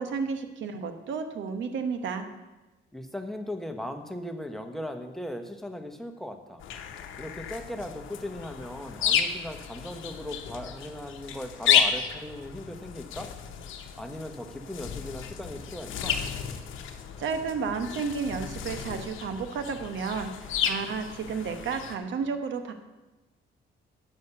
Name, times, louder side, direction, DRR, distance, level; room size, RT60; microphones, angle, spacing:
voice 1, 0.0-2.3 17.2-22.7, right 5 dB, 70° right, 7 dB, 1.1 m, -32 dB
voice 2, 2.9-6.6 7.2-13.3 14.0-16.2, left 1 dB, ahead, 5 dB, 1.1 m, -38 dB
sound 1, 6.6-22.0, left 8 dB, 80° left, 0.9 m, -32 dB
8.6 x 6.5 x 6.7 m, 1.1 s
cardioid pair, 90°, 20 cm